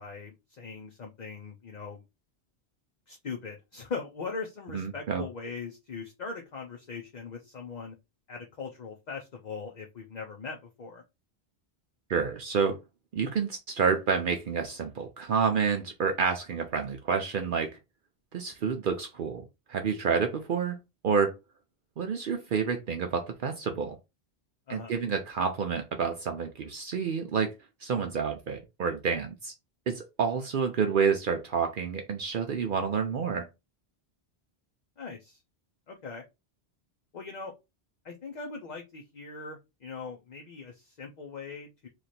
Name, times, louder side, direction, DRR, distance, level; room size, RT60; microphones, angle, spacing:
voice 1, 0.0-2.0 3.1-7.9 8.3-11.0 24.7-25.0 35.0-35.4 35.9-36.2 37.1-37.5 38.0-41.9, left 4 dB, 50° left, 0.7 m, -40 dB
voice 2, 4.7-5.2 12.1-12.8 13.1-17.8 18.3-20.8 21.0-21.4 22.0-24.0 24.7-27.5 27.8-29.5 29.9-33.5, right 6 dB, 60° right, 0.7 m, -29 dB
3.1 x 2.5 x 4.1 m
omnidirectional pair, 1.1 m